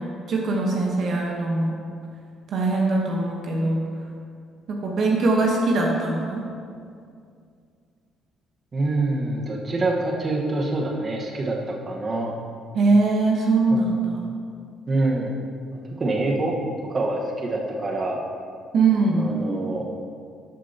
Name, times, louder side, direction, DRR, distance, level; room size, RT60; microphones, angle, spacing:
voice 1, 0.0-1.8 2.5-3.8 4.7-6.5 12.7-14.2 18.7-19.2, right 3 dB, 60° right, -1 dB, 1.1 m, -22 dB
voice 2, 8.7-12.3 13.7-13.8 14.9-15.4 15.7-16.5 16.8-18.2 19.1-19.9, right 2 dB, 40° right, 0 dB, 1.2 m, -26 dB
13.0 x 6.3 x 2.9 m, 2.3 s
supercardioid pair, 70°, 0 cm